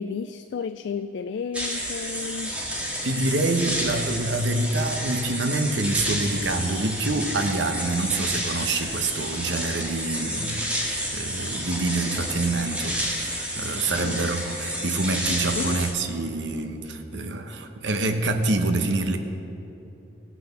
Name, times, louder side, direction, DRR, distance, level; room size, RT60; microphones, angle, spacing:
voice 1, 0.0-2.6 14.0-14.3 15.5-15.8, left 6 dB, 70° left, 11 dB, 0.3 m, -32 dB
sound 1, 1.5-15.9, equal, 5° right, 1.6 m, -30 dB
voice 2, 3.0-10.6 11.1-19.2, right 2 dB, 75° right, 5 dB, 0.9 m, -26 dB
16.5 x 6.0 x 6.9 m, 2.8 s
head